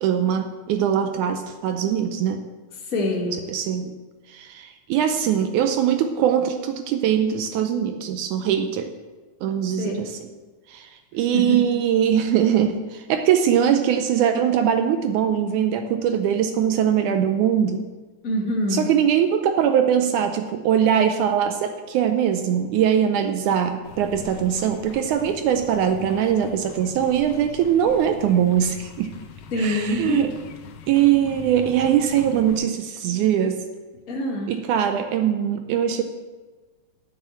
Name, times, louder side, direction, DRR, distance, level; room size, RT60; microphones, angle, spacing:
voice 1, 0.0-2.5 3.5-4.0 4.3-8.9 9.4-10.2 10.7-17.9 18.7-29.1 29.6-30.3 30.9-33.7 34.5-36.0, right 9 dB, 80° right, 7 dB, 1.9 m, -21 dB
voice 2, 2.9-3.3 9.8-9.9 11.3-11.6 18.2-18.8 29.5-30.2 34.1-34.5, left 1 dB, 30° left, -2 dB, 1.7 m, -25 dB
sound 1, 23.8-32.6, left 7 dB, 80° left, 2.5 m, -42 dB
8.7 x 7.0 x 7.9 m, 1.3 s
omnidirectional pair, 3.8 m